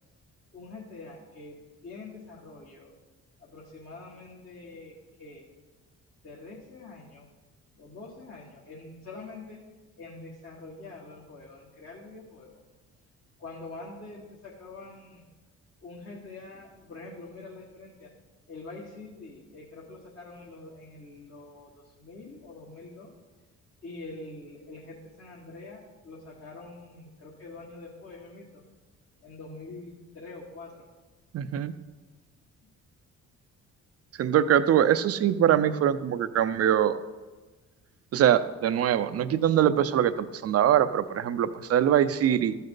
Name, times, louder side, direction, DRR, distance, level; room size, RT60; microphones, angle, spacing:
voice 1, 0.5-1.6 1.8-2.9 3.4-5.4 6.2-7.3 7.8-9.6 10.0-12.6 13.4-15.2 15.8-18.1 18.5-23.1 23.8-28.6 29.2-30.8, left 3 dB, 45° left, -7 dB, 1.9 m, -45 dB
voice 2, 31.3-31.7 34.2-37.0 38.1-42.6, right 10 dB, 55° right, 12 dB, 0.6 m, -23 dB
13.5 x 5.5 x 3.9 m, 1.3 s
cardioid pair, 90°, 30 cm